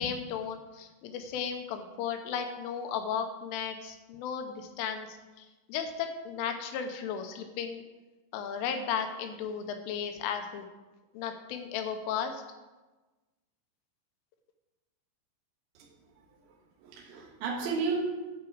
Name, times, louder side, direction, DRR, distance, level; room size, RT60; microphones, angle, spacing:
voice 1, 0.0-7.8 8.3-10.7 11.1-12.4, left 7 dB, 85° left, 6 dB, 3.3 m, -35 dB
voice 2, 15.8-16.2 16.5-18.0, right 4 dB, 70° right, -2 dB, 3.5 m, -34 dB
11.5 x 4.8 x 7.7 m, 1.2 s
omnidirectional pair, 5.6 m